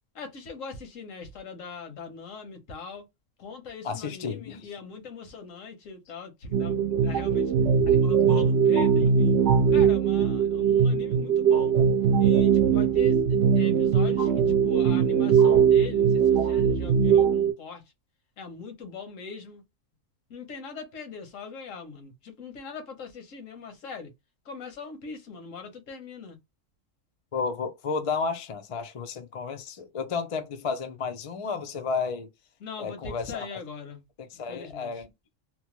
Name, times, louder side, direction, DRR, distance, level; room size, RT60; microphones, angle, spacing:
voice 1, 0.2-3.0 3.4-7.5 8.0-9.4 9.7-11.7 12.2-13.2 13.5-17.8 18.4-19.6 20.3-22.1 22.4-24.1 24.5-26.4 32.6-34.0 34.5-34.9, left 5 dB, 80° left, 1.3 m, -41 dB
voice 2, 3.8-4.7 7.9-8.0 27.3-32.3 32.8-33.6 34.2-35.1, left 5 dB, 50° left, 0.4 m, -32 dB
Harmonic Ambience, 6.5-17.5, right 7 dB, 65° right, 0.9 m, -21 dB
2.9 x 2.1 x 2.9 m
omnidirectional pair, 1.3 m